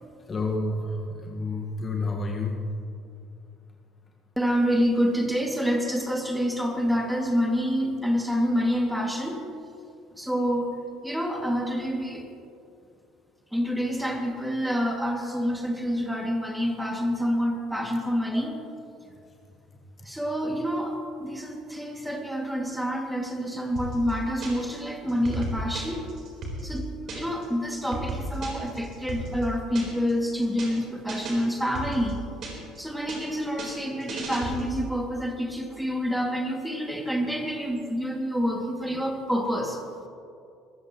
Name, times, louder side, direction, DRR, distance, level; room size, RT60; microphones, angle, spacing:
voice 1, 0.3-2.6, left 2 dB, 30° left, 0 dB, 1.6 m, -29 dB
voice 2, 4.4-9.4 10.2-10.7 11.0-12.2 13.5-18.6 20.0-26.1 26.6-32.2 32.8-40.1, equal, ahead, 2 dB, 2.3 m, -27 dB
sound 1, 23.8-24.8 25.1-27.5 27.8-30.1 30.4-30.8 31.1-32.8 33.1-34.9, right 1 dB, 45° right, 3.8 m, -34 dB
22.0 x 14.5 x 3.1 m, 2.5 s
figure-of-eight pair, 60°, 0 cm